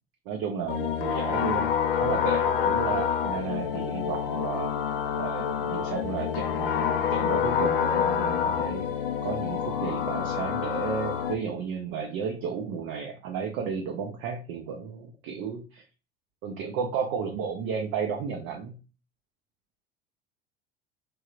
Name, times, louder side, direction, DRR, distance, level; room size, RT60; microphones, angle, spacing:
voice 1, 0.3-4.8 5.2-8.9 9.2-15.8 16.4-18.8, right 6 dB, 40° right, 3 dB, 0.5 m, -33 dB
sound 1, 0.7-11.3, left 8 dB, 65° left, 0.4 m, -27 dB
3.3 x 2.7 x 2.4 m, 0.34 s
figure-of-eight pair, 70°, 30 cm